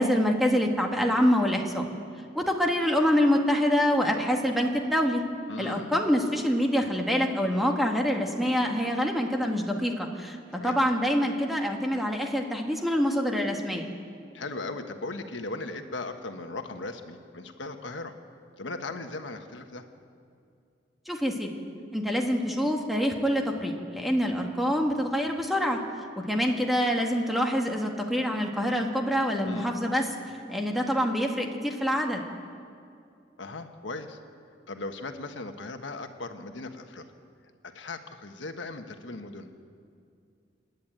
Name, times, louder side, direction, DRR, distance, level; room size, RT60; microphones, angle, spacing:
voice 1, 0.0-1.8 2.3-5.2 5.6-10.4 10.6-13.9 21.1-21.5 21.9-25.8 26.2-30.0 30.5-32.2, equal, ahead, 1 dB, 1.7 m, -26 dB
voice 2, 5.5-5.9 10.5-10.8 14.3-18.1 18.6-19.9 29.4-29.7 33.4-34.2 34.7-37.1 37.6-39.5, left 2 dB, 80° left, 6 dB, 1.3 m, -38 dB
28.5 x 10.5 x 9.1 m, 2.4 s
head